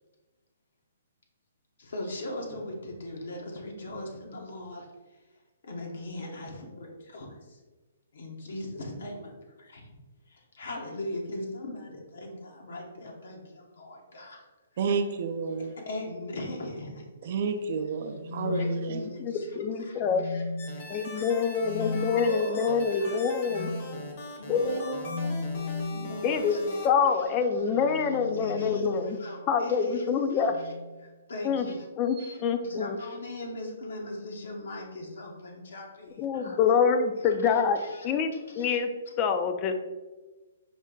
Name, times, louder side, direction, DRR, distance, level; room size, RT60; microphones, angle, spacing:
voice 1, 1.8-5.2 5.6-7.6 8.1-9.9 10.3-14.4 15.6-17.3 18.0-18.1 18.4-20.4 20.7-21.3 21.6-24.1 24.4-25.4 25.9-26.6 27.1-27.9 28.3-30.7 31.0-31.9 32.2-36.6 37.2-38.1 38.4-38.8, left 1 dB, 75° left, 0 dB, 0.9 m, -40 dB
voice 2, 14.8-15.7 17.2-19.1, right 5 dB, 50° right, 7 dB, 0.4 m, -30 dB
sound 1, 18.1-19.4 20.0-20.8 21.6-22.1 23.5-23.9 25.0-26.0 27.5-29.4 30.4-30.9 32.1-32.4, left 3 dB, 15° right, 0.7 m, -36 dB
voice 3, 19.2-20.3 20.9-23.7 24.5-24.6 26.2-26.6 26.8-29.2 29.5-30.5 31.4-31.7 32.0-33.0 36.2-37.8 38.0-38.3 38.6-38.9 39.2-39.7, left 6 dB, 25° left, 7 dB, 0.4 m, -26 dB
sound 2, 20.6-26.9, left 1 dB, 40° left, 0.8 m, -41 dB
5.1 x 2.1 x 3.7 m, 1.2 s
hypercardioid pair, 150°, 0 cm